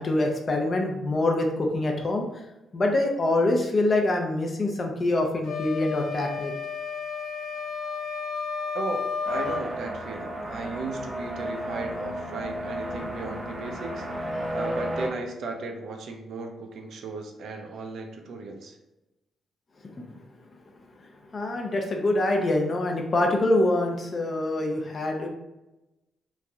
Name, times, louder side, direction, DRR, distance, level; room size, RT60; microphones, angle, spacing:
voice 1, 0.0-2.3 2.7-6.5 20.0-20.1 21.3-25.3, left 2 dB, 35° left, 2 dB, 0.5 m, -25 dB
sound 1, 5.4-9.7, left 5 dB, 85° left, 0.7 m, -32 dB
sound 2, 9.3-15.1, equal, 10° right, 0.6 m, -33 dB
voice 2, 9.3-14.1 14.5-18.8, right 3 dB, 70° right, 3 dB, 0.5 m, -36 dB
3.1 x 2.5 x 2.3 m, 0.97 s
cardioid pair, 100°, 0 cm